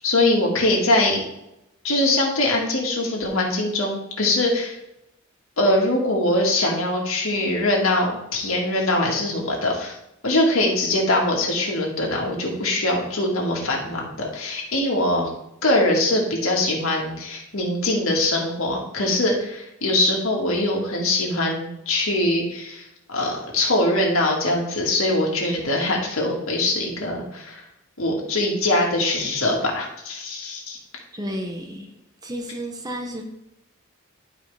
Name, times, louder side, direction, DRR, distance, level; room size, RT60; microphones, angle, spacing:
voice 1, 0.0-1.2 1.8-4.8 5.6-9.9 10.2-15.3 15.6-27.6 28.0-30.8, left 1 dB, 75° left, -1 dB, 1.9 m, -22 dB
voice 2, 31.1-31.9 32.2-33.2, equal, 20° right, 3 dB, 1.0 m, -32 dB
11.5 x 4.9 x 3.5 m, 0.85 s
head